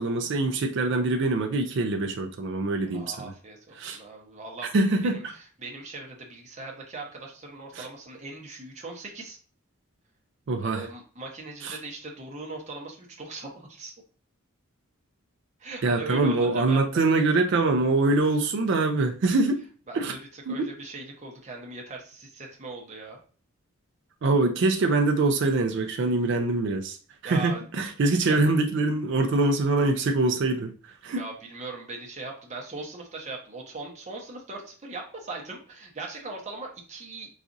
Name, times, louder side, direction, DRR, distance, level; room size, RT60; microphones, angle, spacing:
voice 1, 0.0-3.3 3.7-4.0 4.7-5.3 7.7-7.9 10.5-10.9 11.6-11.8 15.8-19.6 19.9-20.1 20.5-20.7 24.2-27.0 27.2-30.7 31.0-31.3, right 3 dB, 55° right, 4 dB, 0.4 m, -24 dB
voice 2, 2.8-9.4 10.6-13.9 15.6-17.0 19.9-23.2 27.2-27.6 28.3-28.4 31.0-37.3, right 3 dB, 35° right, 1 dB, 0.8 m, -40 dB
4.0 x 2.4 x 2.5 m, 0.40 s
head